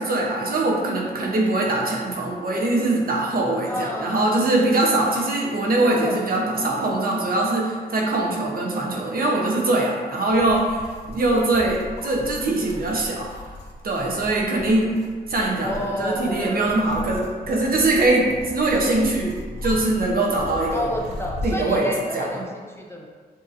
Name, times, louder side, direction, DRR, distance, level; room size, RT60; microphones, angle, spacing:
voice 1, 0.0-13.3 13.8-14.9 15.3-20.9 21.4-22.3, right 2 dB, 60° right, -2 dB, 0.9 m, -22 dB
voice 2, 3.7-4.4 5.6-6.2 15.6-16.6 20.7-23.1, left 1 dB, 15° left, -1 dB, 0.4 m, -30 dB
sound 1, 10.3-21.7, left 1 dB, 80° left, 0.5 m, -37 dB
6.5 x 2.9 x 2.6 m, 1.5 s
wide cardioid pair, 145°, 17 cm